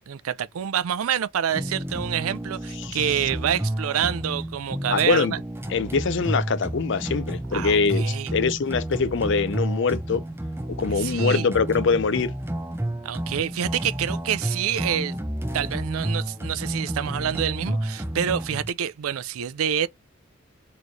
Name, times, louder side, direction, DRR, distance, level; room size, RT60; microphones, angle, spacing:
voice 1, 0.1-5.4 7.5-8.3 11.0-11.5 13.0-15.1 15.5-19.9, right 9 dB, 90° right, 0.4 m, -27 dB
sound 1, 1.5-18.7, right 1 dB, 10° right, 0.5 m, -30 dB
voice 2, 4.9-5.3 5.7-10.2 10.8-12.3, left 5 dB, 60° left, 0.5 m, -23 dB
4.4 x 3.1 x 2.6 m
head